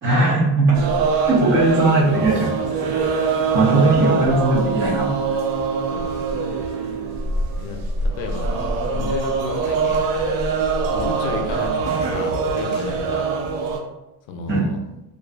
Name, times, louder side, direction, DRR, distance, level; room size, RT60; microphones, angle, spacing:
voice 1, 0.0-0.8 1.1-2.5 3.5-5.1 14.5-14.7, right 2 dB, 30° right, -5 dB, 0.4 m, -18 dB
sound 1, 0.7-13.8, right 4 dB, 80° right, 0.6 m, -23 dB
Wind instrument woodwind instrument, 2.4-7.3, right 6 dB, 20° left, 0.6 m, -31 dB
voice 2, 3.5-4.4 5.9-6.2 7.6-8.5 8.9-10.1 10.9-13.3 14.3-14.8, left 4 dB, 75° left, 4 dB, 0.5 m, -32 dB
2.3 x 2.2 x 2.4 m, 0.95 s
cardioid pair, 165°, 46 cm